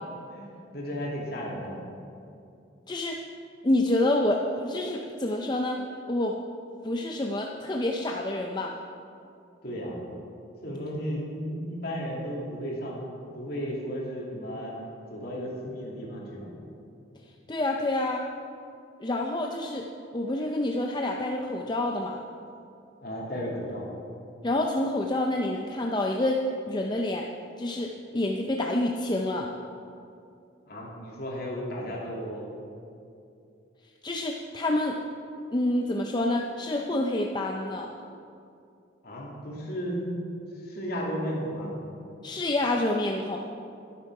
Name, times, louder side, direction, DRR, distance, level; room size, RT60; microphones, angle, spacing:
voice 1, 0.3-1.8 9.6-10.0 10.6-13.0 13.3-14.7 15.1-16.5 23.0-23.9 30.7-32.5 39.0-40.2 40.6-41.7, equal, 50° left, -4 dB, 2.7 m, -34 dB
voice 2, 2.9-3.2 3.6-5.8 6.1-6.4 6.8-8.8 17.5-18.2 19.0-19.9 20.1-22.2 24.4-26.4 26.7-27.3 27.6-29.5 34.0-35.0 35.5-37.9 42.2-43.4, left 1 dB, 20° left, 1 dB, 0.5 m, -27 dB
12.5 x 10.0 x 4.7 m, 2.6 s
head